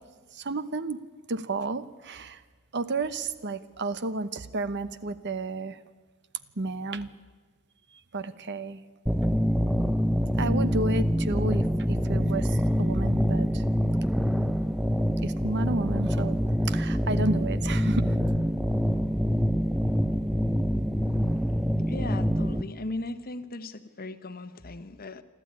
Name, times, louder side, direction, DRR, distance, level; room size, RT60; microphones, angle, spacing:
voice 1, 0.3-1.0 1.3-2.4 2.7-5.8 6.6-7.1 8.1-8.8 10.4-13.6 15.2-16.4 16.7-18.2, right 2 dB, 50° right, 14 dB, 0.9 m, -31 dB
sound 1, 9.1-22.6, equal, ahead, 0.6 m, -25 dB
voice 2, 21.9-25.2, left 2 dB, 45° left, 11 dB, 1.1 m, -37 dB
28.0 x 12.5 x 9.6 m, 1.4 s
head